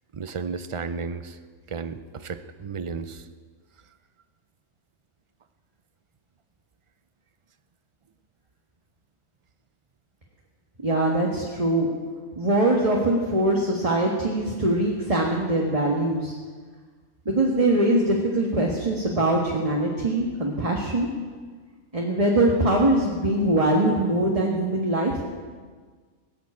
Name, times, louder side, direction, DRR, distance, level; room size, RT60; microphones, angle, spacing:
voice 1, 0.1-1.4 1.7-3.3, right 5 dB, 50° right, 11 dB, 0.3 m, -33 dB
voice 2, 10.8-11.9 12.3-16.3 17.2-21.1 21.9-25.2, right 1 dB, 25° right, -2 dB, 1.6 m, -22 dB
19.0 x 7.6 x 8.5 m, 1.5 s
omnidirectional pair, 1.4 m